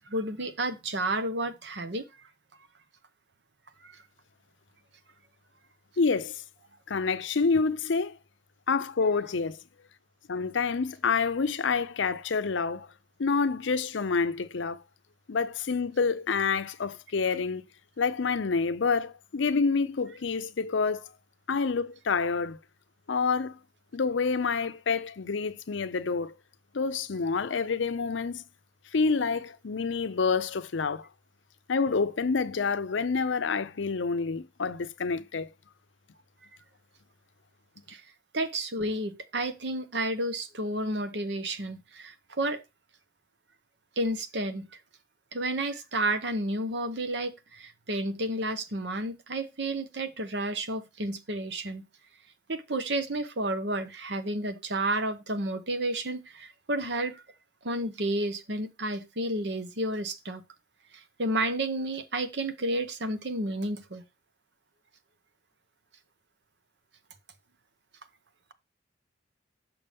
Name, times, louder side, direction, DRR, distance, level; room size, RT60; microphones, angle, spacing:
voice 1, 0.1-2.3 3.8-4.0 37.9-38.0 38.3-42.6 44.0-44.7 45.3-51.9 52.5-57.2 57.6-60.4 60.9-64.0, right 1 dB, 60° right, 1.0 m, -31 dB
voice 2, 6.0-6.4 6.9-8.2 8.7-9.6 10.3-12.9 13.2-14.8 15.3-17.6 18.0-21.1 21.5-22.6 23.1-23.6 23.9-26.3 26.7-28.4 28.9-31.1 31.7-35.5, left 4 dB, 75° left, 0.6 m, -28 dB
6.8 x 6.1 x 3.5 m
head